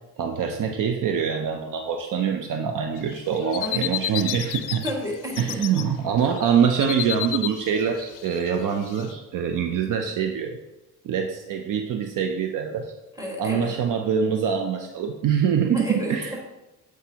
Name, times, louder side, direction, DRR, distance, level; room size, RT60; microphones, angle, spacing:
voice 1, 0.2-4.8 5.4-10.6 11.0-12.9 13.4-16.3, right 7 dB, 60° right, 4 dB, 0.6 m, -24 dB
sound 1, 3.0-4.9 5.2-5.8 6.2-9.1, left 13 dB, 60° left, 0.5 m, -31 dB
voice 2, 3.6-3.9 4.7-5.9 6.2-6.3 13.2-13.7 15.7-16.4, equal, 10° right, -1 dB, 1.7 m, -32 dB
7.8 x 4.6 x 2.8 m, 1.0 s
cardioid pair, 95°, 37 cm